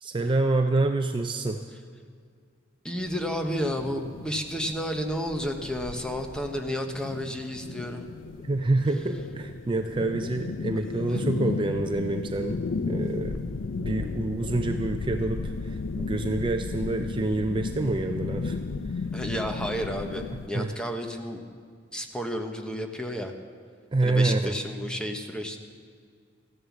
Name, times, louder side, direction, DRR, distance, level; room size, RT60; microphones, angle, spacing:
voice 1, 0.0-1.6 8.4-12.6 12.9-13.5 13.8-18.6 20.5-20.7 23.9-24.5, right 2 dB, 25° right, 6 dB, 0.5 m, -27 dB
voice 2, 2.8-8.1 11.1-11.2 19.1-21.4 21.9-23.3 24.0-25.6, equal, 5° left, 4 dB, 1.0 m, -31 dB
sound 1, 3.0-20.5, left 4 dB, 85° left, 0.5 m, -34 dB
14.5 x 11.0 x 7.2 m, 2.1 s
head